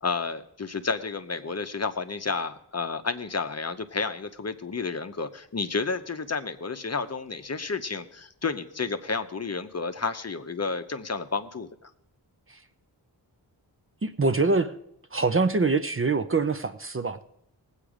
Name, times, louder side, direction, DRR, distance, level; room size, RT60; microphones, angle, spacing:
voice 1, 0.0-11.9, left 4 dB, 35° left, 9 dB, 0.8 m, -31 dB
voice 2, 14.0-14.7 15.1-17.2, right 3 dB, 30° right, 10 dB, 0.6 m, -24 dB
18.5 x 8.2 x 5.0 m, 0.77 s
wide cardioid pair, 70°, 43 cm